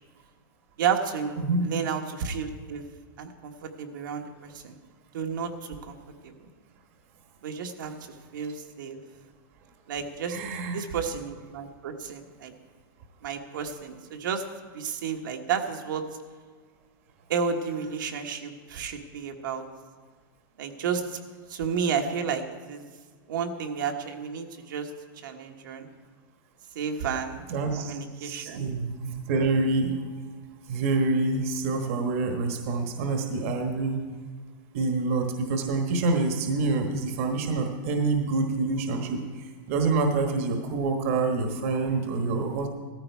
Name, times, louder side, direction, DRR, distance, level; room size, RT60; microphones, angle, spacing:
voice 1, 0.8-2.8 3.2-4.7 5.1-5.9 6.2-6.3 7.4-9.0 9.9-10.4 10.7-12.5 13.2-14.4 14.7-16.0 17.3-19.6 20.6-21.2 21.5-22.8 23.3-24.9 25.2-25.9 26.7-27.4 27.8-28.6, right 6 dB, 65° right, 3 dB, 1.5 m, -31 dB
voice 2, 1.4-1.7 10.3-10.8 27.5-30.0 30.7-34.0 34.7-42.7, right 3 dB, 40° right, 4 dB, 1.2 m, -27 dB
16.0 x 14.0 x 4.6 m, 1.5 s
supercardioid pair, 180°, 12 cm